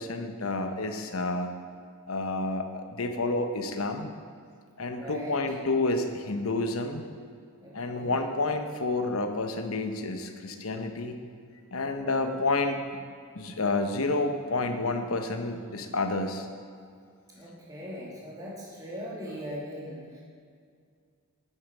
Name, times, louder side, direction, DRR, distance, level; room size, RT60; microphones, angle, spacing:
voice 1, 0.0-1.5 2.1-4.1 4.8-7.0 7.7-11.2 11.7-13.0 13.3-16.5, left 2 dB, 75° left, 6 dB, 0.9 m, -29 dB
voice 2, 4.9-5.4 7.6-8.2 11.9-12.4 17.3-20.2, equal, 15° right, -6 dB, 2.7 m, -40 dB
8.8 x 8.6 x 6.1 m, 2.2 s
head